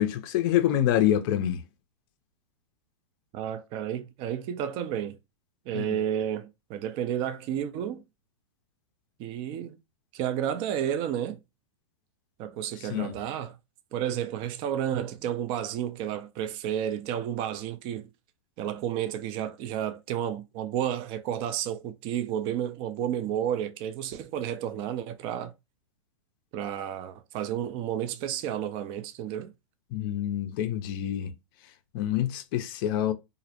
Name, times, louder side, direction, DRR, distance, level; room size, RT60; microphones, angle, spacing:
voice 1, 0.0-1.6 5.7-6.0 12.8-13.2 29.9-31.3 31.9-33.1, left 11 dB, 45° left, 0.4 m, -26 dB
voice 2, 3.3-5.2 5.7-8.0 9.2-9.8 10.1-11.4 12.4-13.6 13.9-18.1 18.6-25.5 26.5-29.5, right 10 dB, 30° right, 0.3 m, -31 dB
2.4 x 2.0 x 2.7 m
hypercardioid pair, 130°, 16 cm